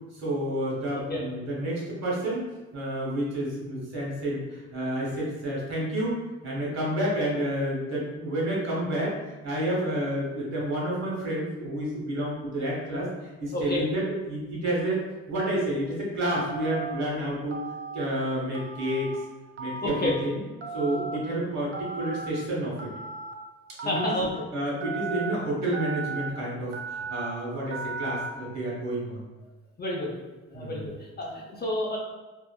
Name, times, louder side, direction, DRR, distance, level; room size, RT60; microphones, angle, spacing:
voice 1, 0.1-2.5 2.7-6.2 6.4-9.1 9.4-13.1 13.4-17.6 17.9-19.2 19.6-20.4 20.7-22.9 23.8-24.1 24.5-29.2 30.5-30.9, right 1 dB, 60° right, -5 dB, 1.2 m, -29 dB
Telephone, 16.5-16.9 17.5-18.1 18.5-19.2 19.6-20.1 20.6-21.2 21.7-22.3 22.8-23.3 23.8-24.3 24.8-25.3 25.7-26.3 26.7-27.3 27.7-28.3, right 4 dB, 40° right, 0.4 m, -35 dB
voice 2, 19.8-20.1 23.8-24.5 29.8-30.2 30.5-32.0, left 1 dB, 30° left, -3 dB, 0.6 m, -30 dB
2.6 x 2.4 x 2.3 m, 1.2 s
cardioid pair, 90°, 30 cm